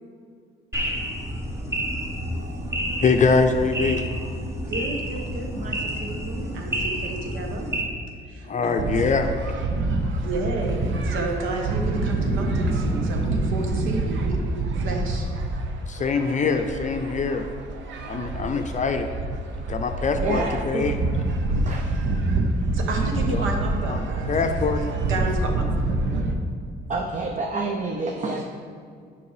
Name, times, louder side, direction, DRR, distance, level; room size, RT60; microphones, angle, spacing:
sound 1, 0.7-7.8, equal, 15° right, 1.1 m, -29 dB
voice 1, 3.0-4.0 8.5-9.3 15.9-17.5 18.0-19.1 19.7-21.0 23.3-23.5 23.9-24.0 24.3-24.8, left 4 dB, 40° left, 6 dB, 0.5 m, -23 dB
voice 2, 4.7-7.7 8.3-9.0 10.2-15.3 20.3-20.4 22.7-24.3 24.6-26.2, right 2 dB, 85° right, 2 dB, 1.1 m, -32 dB
sound 2, 8.8-26.3, right 2 dB, 70° right, 0.8 m, -26 dB
voice 3, 20.2-20.9 21.5-22.0 26.9-28.4, right 3 dB, 40° right, 2 dB, 0.7 m, -28 dB
7.0 x 5.3 x 4.9 m, 2.2 s
cardioid pair, 90°, 20 cm